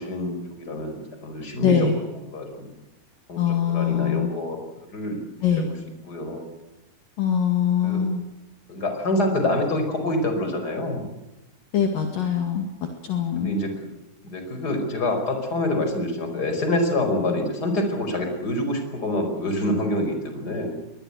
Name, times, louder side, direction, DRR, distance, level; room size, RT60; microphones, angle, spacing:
voice 1, 0.0-1.9 2.3-2.7 3.3-4.6 4.9-5.2 5.6-5.7 6.1-6.5 7.8-8.0 8.7-11.0 13.4-13.7 14.2-20.8, left 1 dB, 25° left, 5 dB, 5.2 m, -26 dB
voice 2, 1.6-1.9 3.4-4.3 5.4-5.7 7.2-8.2 11.7-12.7 13.0-13.6, left 8 dB, 60° left, 4 dB, 3.5 m, -22 dB
24.0 x 20.5 x 8.1 m, 0.97 s
omnidirectional pair, 4.7 m